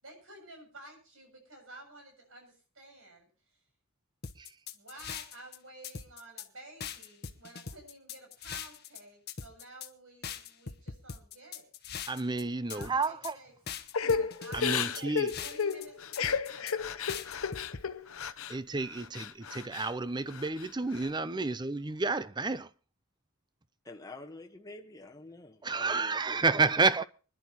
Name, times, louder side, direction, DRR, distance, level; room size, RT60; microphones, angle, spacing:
voice 1, 0.0-3.3 4.7-11.7 12.7-13.5 14.2-17.0 21.9-22.0, right 2 dB, 70° right, 7.1 m, -52 dB
sound 1, 4.2-5.6 5.8-6.5 6.8-9.0 9.3-9.9 10.2-12.4 12.7-13.3 13.7-15.8 16.1-16.7 17.1-17.8, left 7 dB, 50° left, 1.0 m, -41 dB
voice 2, 12.1-13.4 14.5-15.3 18.5-22.7 25.6-27.0, right 4 dB, 20° right, 0.6 m, -30 dB
Crying sobbing / Breathing, 13.9-18.6 18.9-19.9 20.3-21.1, left 6 dB, 80° left, 0.8 m, -33 dB
voice 3, 23.8-26.9, left 2 dB, 15° left, 1.2 m, -48 dB
24.0 x 11.5 x 2.9 m
head